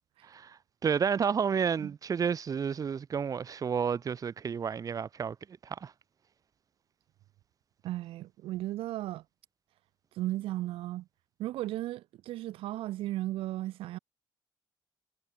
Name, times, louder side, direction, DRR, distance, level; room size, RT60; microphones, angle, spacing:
voice 1, 0.2-5.4 5.6-5.9, right 6 dB, 40° right, 1.0 m, -31 dB
voice 2, 7.8-9.2 10.1-11.1 11.4-14.0, right 15 dB, 85° right, 1.2 m, -35 dB
cardioid pair, 95°, 9 cm